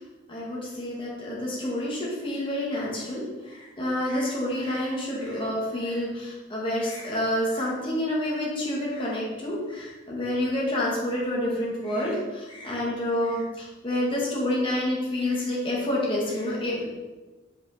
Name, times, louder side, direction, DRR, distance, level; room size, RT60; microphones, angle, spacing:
voice 1, 0.3-17.0, left 1 dB, 25° left, -5 dB, 1.8 m, -28 dB
7.5 x 5.2 x 4.3 m, 1.2 s
head